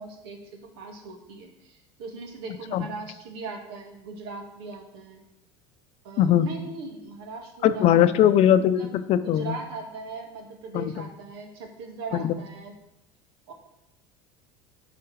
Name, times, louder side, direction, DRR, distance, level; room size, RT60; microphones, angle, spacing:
voice 1, 0.0-5.2 6.0-8.1 8.8-12.7 13.5-13.6, right 3 dB, 80° right, 4 dB, 1.8 m, -39 dB
voice 2, 6.2-6.5 7.6-9.5 10.7-11.1 12.1-12.4, left 10 dB, 55° left, 12 dB, 0.6 m, -20 dB
10.5 x 5.1 x 4.8 m, 0.86 s
supercardioid pair, 95°, 13 cm